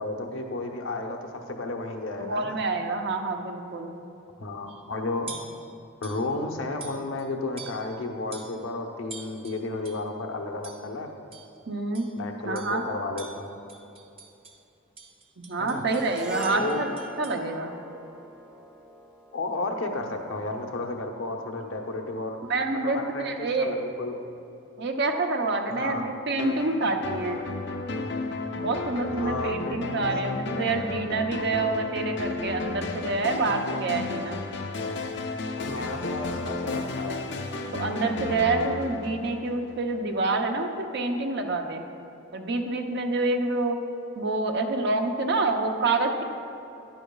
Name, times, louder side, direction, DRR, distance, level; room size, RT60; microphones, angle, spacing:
voice 1, 0.0-2.6 4.4-5.3 6.0-11.2 12.2-13.6 15.6-15.8 16.6-16.8 19.3-22.4 22.7-24.2 25.7-26.1 29.1-30.1 35.6-37.3, left 2 dB, 85° left, 3 dB, 0.9 m, -33 dB
voice 2, 2.2-4.0 11.7-12.1 12.4-12.8 15.4-17.8 22.5-23.8 24.8-27.4 28.6-34.4 37.7-41.9 42.3-43.8 44.2-46.2, right 3 dB, 60° right, 4 dB, 0.7 m, -27 dB
sound 1, 4.7-4.9 5.3-5.6 6.0-6.3 6.8-7.3 7.6-8.0 8.3-8.6 9.1-10.1 10.6-10.9 11.3-11.6 11.9-12.2 12.5-12.8 13.2-14.6 15.0-17.4, right 4 dB, 30° right, 0.8 m, -45 dB
Harp, 15.9-20.3, equal, 5° right, 0.5 m, -41 dB
sound 2, 26.4-39.9, left 3 dB, 60° left, 0.6 m, -33 dB
10.5 x 10.0 x 2.3 m, 2.8 s
head